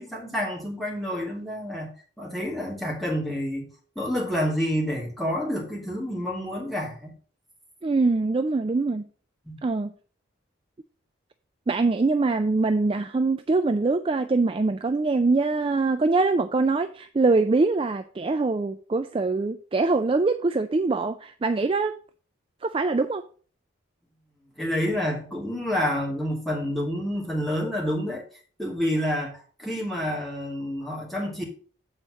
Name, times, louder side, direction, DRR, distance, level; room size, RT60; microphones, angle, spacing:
voice 1, 0.0-3.7 4.0-7.1 9.5-9.6 24.6-28.2 28.6-31.4, equal, ahead, 2.4 m, -28 dB
voice 2, 7.8-9.1 9.6-9.9 11.7-22.0 22.6-23.2, right 3 dB, 25° right, 0.3 m, -23 dB
8.1 x 4.3 x 6.2 m
head